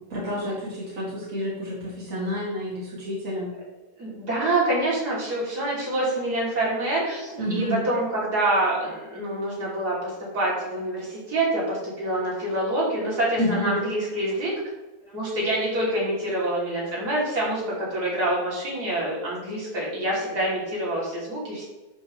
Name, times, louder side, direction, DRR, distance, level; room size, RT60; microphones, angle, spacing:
voice 1, 0.1-3.5 7.4-7.8 13.4-13.7, equal, 55° right, -7 dB, 2.6 m, -29 dB
voice 2, 4.0-14.5 15.1-21.7, right 1 dB, 75° right, -6 dB, 3.6 m, -26 dB
12.0 x 5.6 x 3.2 m, 1.1 s
omnidirectional pair, 1.7 m